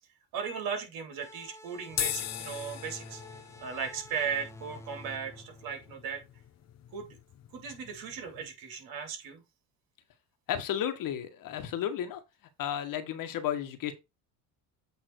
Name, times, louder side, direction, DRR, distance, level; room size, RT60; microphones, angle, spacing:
voice 1, 0.3-3.2 3.6-6.2 6.9-7.1 7.5-9.4, right 6 dB, 65° right, 3.3 m, -37 dB
sound 1, 1.2-6.5, equal, 10° left, 1.3 m, -50 dB
sound 2, 1.9-8.5, left 11 dB, 45° left, 0.9 m, -40 dB
voice 2, 10.5-12.2 12.6-13.9, left 10 dB, 60° left, 1.6 m, -33 dB
8.4 x 3.8 x 4.6 m
supercardioid pair, 95°, 37 cm